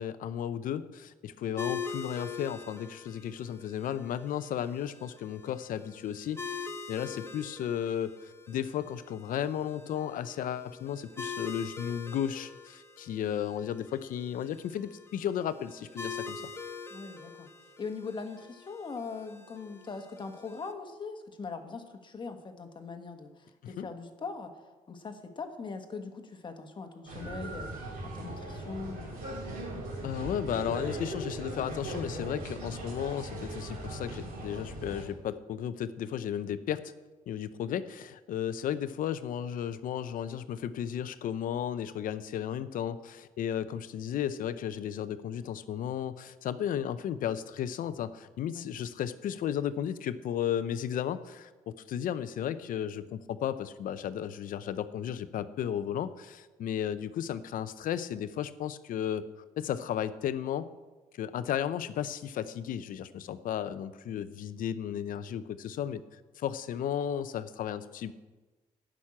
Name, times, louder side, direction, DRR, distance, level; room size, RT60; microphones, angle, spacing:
voice 1, 0.0-16.5 23.6-23.9 30.0-36.9 37.3-59.2 59.6-60.7 61.1-68.1, left 9 dB, 70° left, 13 dB, 0.6 m, -34 dB
sound 1, 1.6-20.7, left 5 dB, 15° left, 1.1 m, -44 dB
voice 2, 16.9-17.5 17.8-29.0 48.5-48.7, left 4 dB, 35° left, 6 dB, 1.3 m, -41 dB
sound 2, 27.1-35.0, right 1 dB, 85° right, 3.2 m, -39 dB
10.0 x 6.3 x 8.6 m, 1.2 s
cardioid pair, 105°, 14 cm